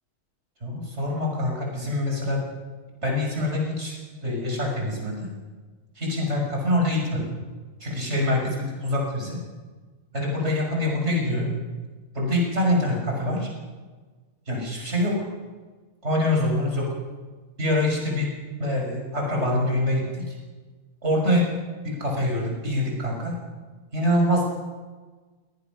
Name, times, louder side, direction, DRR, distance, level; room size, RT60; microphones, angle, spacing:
voice 1, 0.6-2.4 3.0-5.3 6.0-7.2 7.8-9.4 10.1-11.5 12.1-13.5 14.5-15.3 16.0-16.9 17.6-18.3 18.6-20.4 21.0-21.4 21.8-23.3 23.9-24.5, left 1 dB, 45° right, -1 dB, 6.2 m, -25 dB
23.5 x 18.5 x 6.2 m, 1.4 s
omnidirectional pair, 1.6 m